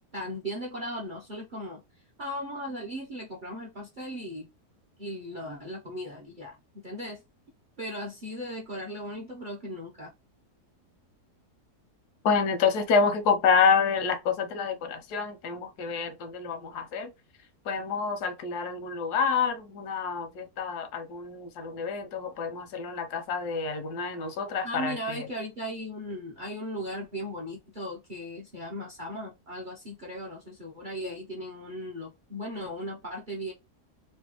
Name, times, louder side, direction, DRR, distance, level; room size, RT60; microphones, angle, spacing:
voice 1, 0.1-1.8 2.2-4.5 5.0-7.2 7.8-10.1 24.6-33.5, equal, 55° right, 0.5 m, -37 dB
voice 2, 12.2-17.1 17.7-25.2, left 5 dB, 85° left, 1.3 m, -28 dB
3.1 x 2.2 x 2.8 m
omnidirectional pair, 1.7 m